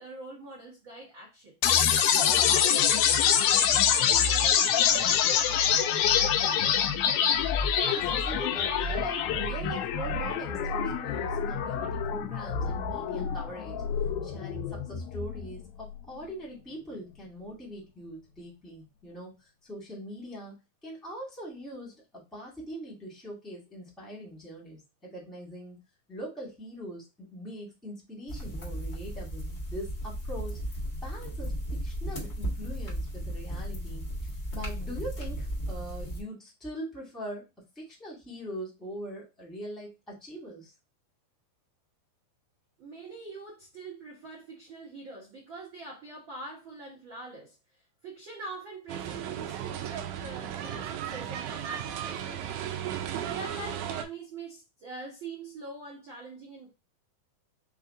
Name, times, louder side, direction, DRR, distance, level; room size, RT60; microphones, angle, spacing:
voice 1, 0.0-1.5 2.0-6.7 42.8-47.5 48.0-52.7 53.2-56.7, right 3 dB, 70° right, 1.1 m, -44 dB
sound 1, 1.6-15.6, left 8 dB, 90° left, 2.4 m, -26 dB
voice 2, 7.8-13.8 14.2-19.3 19.6-20.5 20.8-25.8 26.1-30.6 31.0-34.1 34.5-37.4 37.7-40.7, equal, ahead, 0.8 m, -42 dB
sound 2, 28.3-36.2, equal, 55° left, 0.7 m, -35 dB
sound 3, 48.9-54.0, right 10 dB, 85° right, 1.7 m, -35 dB
5.5 x 2.5 x 3.7 m
omnidirectional pair, 4.2 m